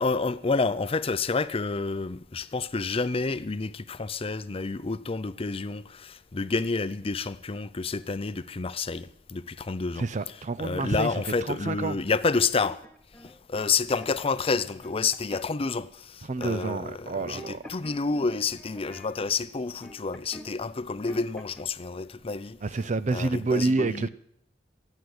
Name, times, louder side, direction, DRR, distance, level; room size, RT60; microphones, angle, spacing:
voice 1, 0.0-10.1 10.6-12.8 13.2-22.6 23.1-24.1, left 4 dB, 30° left, 0.6 m, -29 dB
voice 2, 10.0-12.0 16.3-17.6 22.6-24.1, right 3 dB, 40° right, 0.5 m, -28 dB
sound 1, 12.3-14.1 14.5-15.7 16.4-16.8 17.0-20.5 20.8-21.6, equal, 5° left, 1.1 m, -47 dB
16.0 x 8.4 x 7.8 m
head